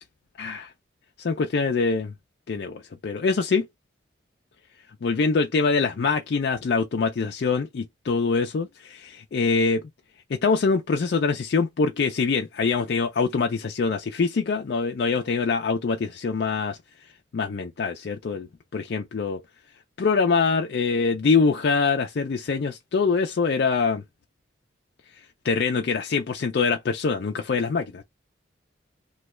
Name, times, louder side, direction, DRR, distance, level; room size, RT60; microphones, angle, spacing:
voice 1, 0.4-0.7 1.2-2.1 2.5-3.7 5.0-9.8 10.3-16.8 17.3-18.5 18.7-19.4 20.0-24.0 25.4-28.0, left 4 dB, 55° left, 0.4 m, -24 dB
3.1 x 2.2 x 3.1 m
head